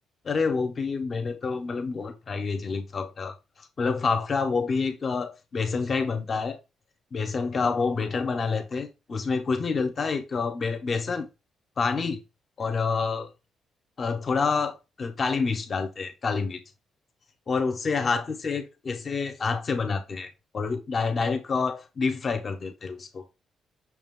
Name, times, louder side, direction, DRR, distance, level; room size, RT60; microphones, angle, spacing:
voice 1, 0.2-6.6 7.1-11.3 11.8-12.2 12.6-13.3 14.0-16.6 17.5-23.2, left 4 dB, 40° left, 0.9 m, -28 dB
6.1 x 2.4 x 3.6 m
cardioid pair, 105°, 0 cm